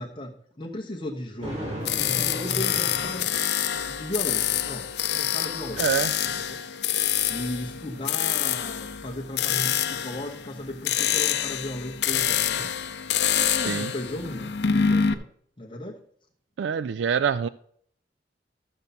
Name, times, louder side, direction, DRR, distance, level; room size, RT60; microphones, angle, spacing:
voice 1, 0.0-1.7 2.0-5.9 6.2-6.6 7.3-12.7 13.3-15.3 15.6-16.0, left 1 dB, 25° left, -2 dB, 1.0 m, -36 dB
Thunder, 1.4-3.9, equal, 35° right, 2.8 m, -35 dB
sound 1, 1.8-15.1, left 9 dB, 65° left, 0.6 m, -26 dB
voice 2, 5.8-6.1 13.7-13.9 16.6-17.5, right 7 dB, 80° right, 16 dB, 0.3 m, -25 dB
13.5 x 6.8 x 4.1 m, 0.63 s
head